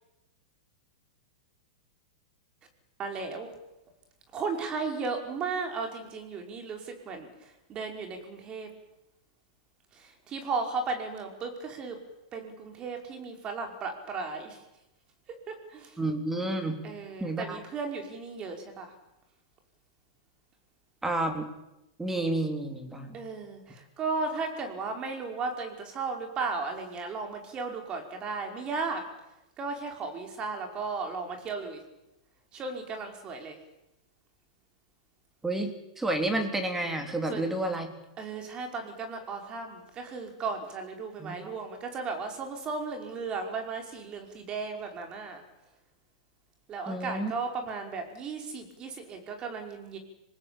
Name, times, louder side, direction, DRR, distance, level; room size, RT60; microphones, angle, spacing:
voice 1, 3.0-3.5 4.3-8.7 9.9-12.0 12.3-14.6 15.5-16.0 16.8-18.9 23.1-29.0 29.6-31.8 32.5-33.6 37.3-37.5 38.2-45.4 46.7-50.0, right 4 dB, 30° right, 4 dB, 5.5 m, -35 dB
voice 2, 16.0-16.8 17.2-17.6 21.0-21.5 22.0-23.2 35.4-37.9 41.2-41.5 46.9-47.3, right 2 dB, 10° right, 5 dB, 3.6 m, -30 dB
26.5 x 19.5 x 9.0 m, 0.94 s
hypercardioid pair, 120°, 3 cm